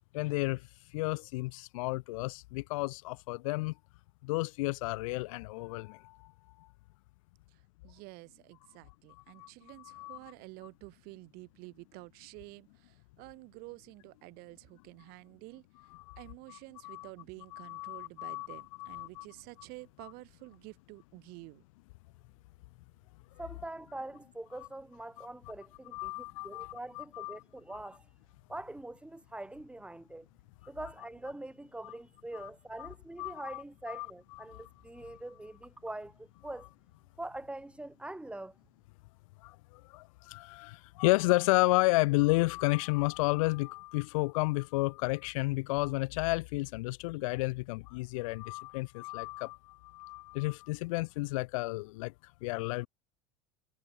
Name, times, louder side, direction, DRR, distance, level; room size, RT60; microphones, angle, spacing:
voice 1, 0.1-0.7 0.9-3.7 4.2-6.3 6.6-6.7 9.4-9.5 9.8-10.2 15.9-16.2 16.5-16.6 16.8-17.1 17.5-19.3 25.2-25.3 25.9-27.4 31.8-31.9 32.4-32.5 32.8-32.9 33.2-34.1 34.5-34.6 39.4-52.9, left 22 dB, 65° left, 0.4 m, -32 dB
voice 2, 7.5-15.9 16.2-21.6, right 25 dB, 60° right, 5.5 m, -50 dB
voice 3, 23.4-28.1 28.5-30.3 30.7-36.7 37.2-38.6, right 2 dB, 5° right, 2.8 m, -44 dB
hypercardioid pair, 90°, 18 cm